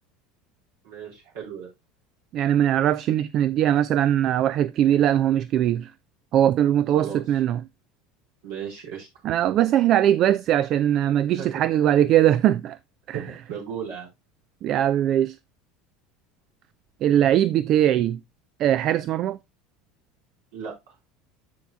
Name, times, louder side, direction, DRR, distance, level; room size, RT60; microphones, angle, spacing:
voice 1, 0.8-1.7 6.9-7.2 8.4-9.1 11.4-11.6 13.1-14.1 20.5-20.9, right 7 dB, 70° right, 4.0 m, -36 dB
voice 2, 2.3-5.9 6.3-7.6 9.2-12.8 13.1-13.2 14.6-15.4 17.0-18.2 18.6-19.4, right 11 dB, 50° right, 0.4 m, -21 dB
14.0 x 4.7 x 2.2 m
hypercardioid pair, 75°, 0 cm